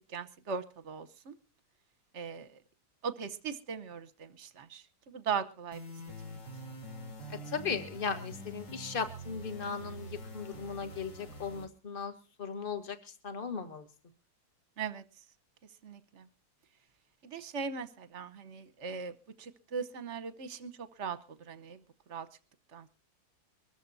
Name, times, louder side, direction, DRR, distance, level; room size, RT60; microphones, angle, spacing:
voice 1, 0.1-1.3 2.1-2.6 3.0-5.8 14.8-15.0 15.8-16.3 17.2-21.8 22.1-22.3 22.7-22.9, right 6 dB, 45° right, 12 dB, 1.0 m, -39 dB
sound 1, 5.7-11.7, equal, 60° left, 3.1 m, -45 dB
voice 2, 7.3-12.1 12.4-13.9, left 6 dB, 30° left, 9 dB, 1.5 m, -37 dB
23.5 x 14.0 x 2.7 m, 0.34 s
omnidirectional pair, 2.2 m